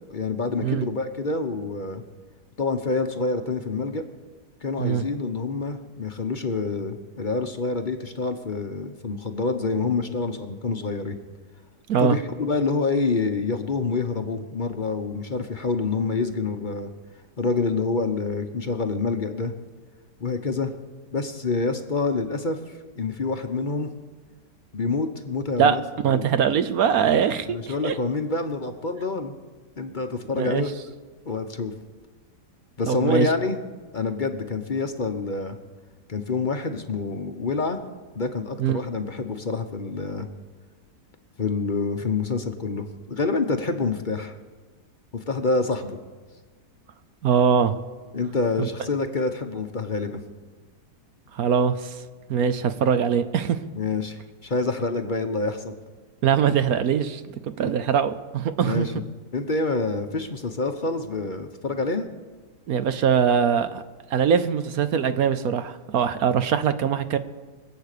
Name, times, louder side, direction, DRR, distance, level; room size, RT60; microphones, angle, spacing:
voice 1, 0.1-2.0 2.6-4.1 4.6-11.2 12.0-16.9 17.4-19.5 20.2-20.7 21.1-23.9 24.7-25.8 26.1-26.2 27.5-29.3 29.8-30.7 31.3-31.7 32.8-33.6 33.9-35.6 36.1-37.8 38.1-40.3 41.4-44.3 45.1-46.0 48.1-50.2 53.7-55.7 58.6-62.1, left 3 dB, 35° left, 0.9 m, -27 dB
voice 2, 25.6-28.0 30.3-30.7 32.9-33.3 38.6-38.8 47.2-47.8 48.6-48.7 51.3-52.0 52.3-53.6 56.2-58.9 62.7-63.8 64.1-67.2, right 7 dB, 65° right, 1.1 m, -22 dB
23.5 x 8.6 x 6.7 m
omnidirectional pair, 1.8 m